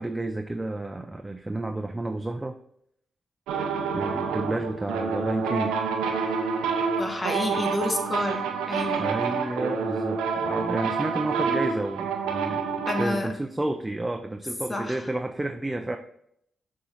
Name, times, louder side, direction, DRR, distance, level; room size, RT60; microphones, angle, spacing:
voice 1, 0.0-2.6 3.9-5.8 9.0-16.0, right 2 dB, 20° right, 5 dB, 0.6 m, -31 dB
sound 1, 3.5-13.1, right 5 dB, 90° right, 0.6 m, -28 dB
voice 2, 7.0-9.1 12.9-13.3 14.7-15.1, left 2 dB, 30° left, 3 dB, 1.5 m, -29 dB
6.8 x 3.7 x 4.2 m, 0.70 s
supercardioid pair, 40°, 0 cm